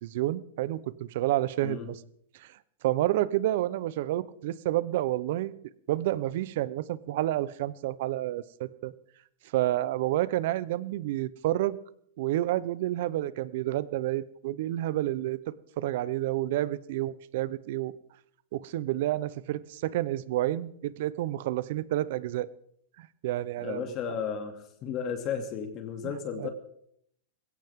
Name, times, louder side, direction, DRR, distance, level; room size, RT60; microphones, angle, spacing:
voice 1, 0.0-1.9 2.4-2.5 2.8-5.5 5.9-8.9 9.5-11.8 12.2-17.9 18.5-22.5 23.0-23.8 24.1-24.2 26.0-26.5, right 14 dB, 60° right, 18 dB, 0.8 m, -29 dB
voice 2, 23.6-26.5, left 7 dB, 35° left, 5 dB, 2.6 m, -34 dB
20.5 x 17.0 x 3.7 m, 0.67 s
supercardioid pair, 150°, 0 cm